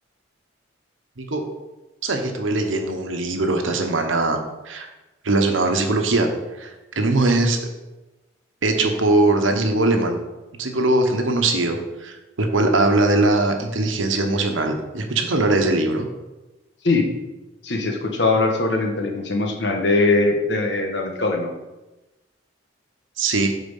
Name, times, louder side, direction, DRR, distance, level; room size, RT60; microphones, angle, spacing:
voice 1, 2.0-4.4 4.6-4.9 5.2-6.3 6.6-7.6 8.6-10.2 10.6-16.1 23.2-23.5, right 2 dB, 90° right, 4 dB, 1.1 m, -21 dB
voice 2, 17.6-21.5, left 3 dB, 65° left, 2 dB, 1.3 m, -21 dB
8.3 x 4.4 x 5.5 m, 1.1 s
head